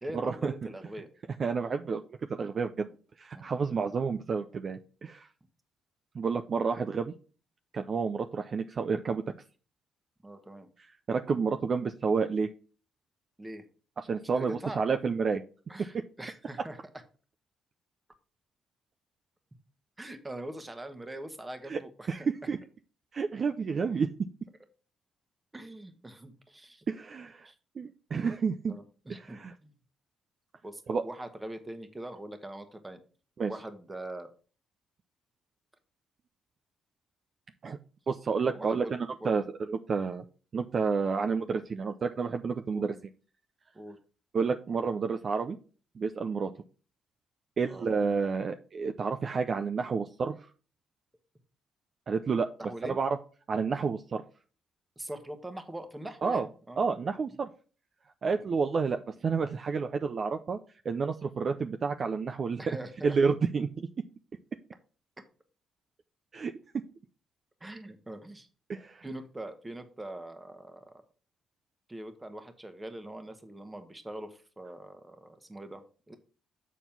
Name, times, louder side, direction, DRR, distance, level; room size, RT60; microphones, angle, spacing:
voice 1, 0.0-1.1 2.8-2.9 3.3-3.5 10.2-10.7 13.4-13.7 14.2-14.8 15.7-16.8 20.0-22.3 25.5-26.8 27.4-27.5 28.7-29.8 30.6-33.0 33.5-34.3 38.5-38.9 39.2-39.4 42.7-42.9 43.7-44.0 47.6-47.9 52.6-53.0 55.0-56.8 58.2-58.4 62.6-63.2 67.6-68.5 69.0-71.0 71.9-76.2, right 1 dB, 15° right, 8 dB, 1.3 m, -42 dB
voice 2, 1.4-2.9 3.2-5.3 6.1-7.1 7.7-9.2 11.1-12.5 14.0-15.4 15.9-16.0 21.7-21.8 22.1-22.6 23.1-24.1 26.9-27.5 27.8-28.7 29.2-29.5 30.9-31.0 33.4-33.5 37.6-37.8 38.1-40.2 40.5-42.9 44.3-45.6 46.0-46.5 47.6-50.4 52.1-52.5 52.8-53.2 53.5-54.2 56.2-56.5 56.8-57.5 58.2-60.6 60.8-62.6 63.0-63.9 66.3-66.5 68.7-69.0, right 5 dB, 45° right, 7 dB, 0.5 m, -30 dB
7.1 x 4.2 x 5.9 m, 0.38 s
cardioid pair, 90°, 0 cm